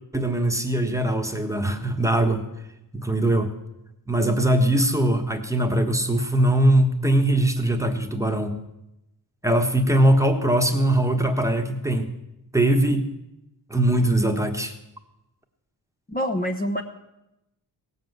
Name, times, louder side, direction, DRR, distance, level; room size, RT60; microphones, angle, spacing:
voice 1, 0.1-2.4 2.9-3.5 4.1-8.6 9.4-12.1 12.5-13.1 13.7-14.7, right 1 dB, 5° right, 4 dB, 1.3 m, -21 dB
voice 2, 16.1-16.8, equal, 20° left, 2 dB, 1.0 m, -26 dB
17.5 x 7.8 x 7.9 m, 0.90 s
wide cardioid pair, 105°, 44 cm